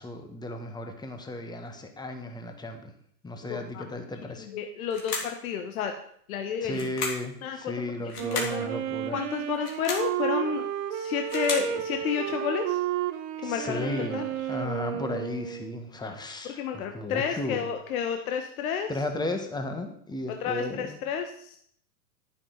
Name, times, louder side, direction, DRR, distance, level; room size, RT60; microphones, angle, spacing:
voice 1, 0.0-2.9 3.2-4.5 6.6-9.2 13.4-14.2 14.5-17.6 18.9-21.0, left 2 dB, 10° left, 5 dB, 1.6 m, -35 dB
voice 2, 3.5-3.8 4.2-5.9 6.3-6.9 7.4-7.7 8.0-8.7 9.1-12.8 13.4-14.3 16.4-18.9 20.4-21.6, left 7 dB, 65° left, 5 dB, 1.4 m, -31 dB
sound 1, 4.9-5.4 6.7-7.3 8.1-8.6 9.5-10.1 11.0-11.7, left 4 dB, 85° left, 3.3 m, -34 dB
Wind instrument woodwind instrument, 8.2-15.9, right 11 dB, 45° right, 1.2 m, -32 dB
11.0 x 9.8 x 4.0 m, 0.65 s
hypercardioid pair, 105°, 46 cm